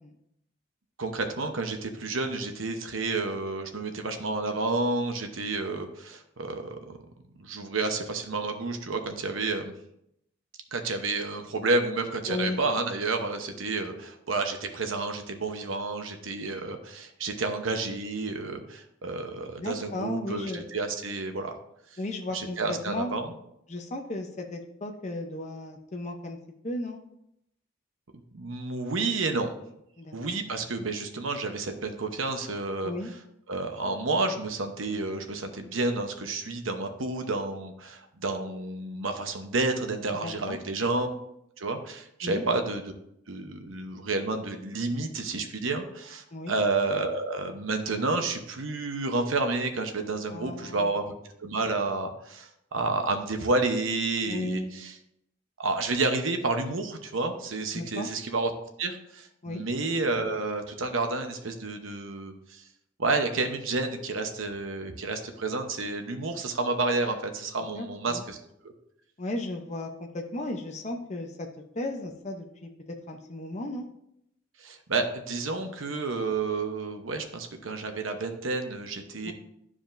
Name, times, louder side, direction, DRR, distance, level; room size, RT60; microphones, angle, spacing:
voice 1, 1.0-7.0 7.4-9.7 10.7-21.6 21.9-22.0 22.3-23.3 28.3-29.5 30.1-32.9 33.5-41.1 41.6-42.9 43.3-51.1 51.4-54.9 55.6-58.5 58.8-62.6 63.0-68.4 74.6-79.3, right 3 dB, 90° right, 6 dB, 0.9 m, -30 dB
voice 2, 12.3-12.6 19.6-20.6 22.0-23.1 23.7-26.4 26.6-27.0 30.0-30.4 32.8-33.1 40.2-40.6 42.2-42.4 46.3-46.6 50.3-50.9 54.3-54.7 57.7-58.1 59.4-59.6 67.7-68.2 69.2-71.5 71.7-72.7 73.1-73.9 79.2-79.3, left 2 dB, 35° left, 3 dB, 0.7 m, -35 dB
11.5 x 4.9 x 2.6 m, 0.78 s
head